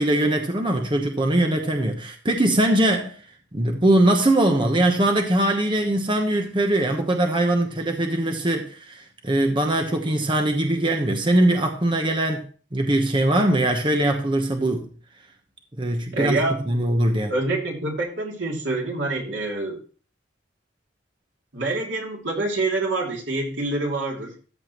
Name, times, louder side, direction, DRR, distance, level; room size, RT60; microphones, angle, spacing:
voice 1, 0.0-3.1 3.5-12.4 12.7-14.9 15.8-17.3, right 1 dB, 25° right, 1.1 m, -21 dB
voice 2, 16.1-16.6 17.3-19.8 21.5-24.3, right 2 dB, 85° right, 2.9 m, -26 dB
13.5 x 7.7 x 3.1 m
head